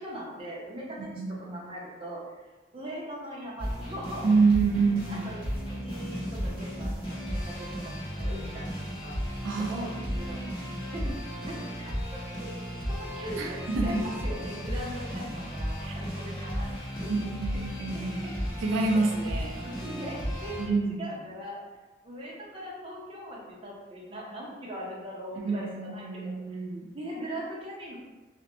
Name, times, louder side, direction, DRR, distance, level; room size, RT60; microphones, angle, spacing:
voice 1, 0.0-1.1 1.5-2.2 2.7-4.3 5.1-8.6 9.0-10.4 10.9-11.2 11.4-12.0 12.4-12.5 12.9-16.7 16.9-17.1 18.9-19.1 19.6-21.6 22.0-25.7 25.9-26.3 26.9-28.0, equal, 30° right, -5 dB, 0.6 m, -40 dB
voice 2, 1.0-1.7 4.2-5.3 9.4-10.5 13.4-14.0 15.8-15.9 17.2-18.3 18.6-19.5 20.6-21.0 25.3-26.9, right 4 dB, 90° right, 0 dB, 0.4 m, -28 dB
sound 1, 3.6-20.7, equal, 25° left, 0.9 m, -34 dB
2.4 x 2.1 x 2.8 m, 1.2 s
head